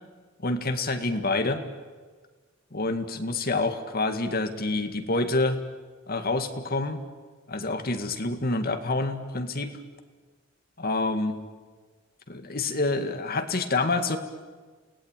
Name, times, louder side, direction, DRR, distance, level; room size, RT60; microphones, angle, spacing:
voice 1, 0.4-1.6 2.7-5.6 6.1-7.0 7.5-9.7 10.8-11.4 12.3-14.2, left 2 dB, 50° left, 8 dB, 2.0 m, -27 dB
29.0 x 18.5 x 9.1 m, 1.4 s
head